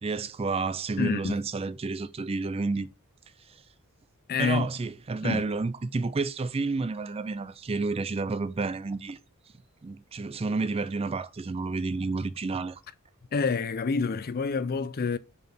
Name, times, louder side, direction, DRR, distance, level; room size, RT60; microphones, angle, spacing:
voice 1, 0.0-2.9 4.4-9.2 9.8-12.8, right 3 dB, 25° right, 0.4 m, -30 dB
voice 2, 1.0-1.3 4.3-4.7 5.2-5.4 13.3-15.2, left 5 dB, 40° left, 0.4 m, -27 dB
5.4 x 4.7 x 4.4 m
head